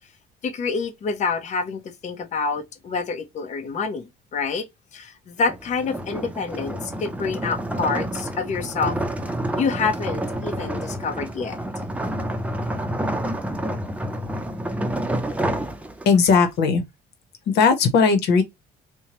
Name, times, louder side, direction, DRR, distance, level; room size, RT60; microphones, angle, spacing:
voice 1, 0.4-4.0 4.3-4.7 4.9-9.0 9.6-11.6, left 4 dB, 45° left, 0.8 m, -27 dB
sound 1, 5.4-16.4, right 1 dB, 10° right, 0.6 m, -29 dB
voice 2, 16.1-16.8 17.5-18.4, left 5 dB, 80° left, 1.0 m, -17 dB
4.5 x 2.2 x 2.9 m
cardioid pair, 110°, 17 cm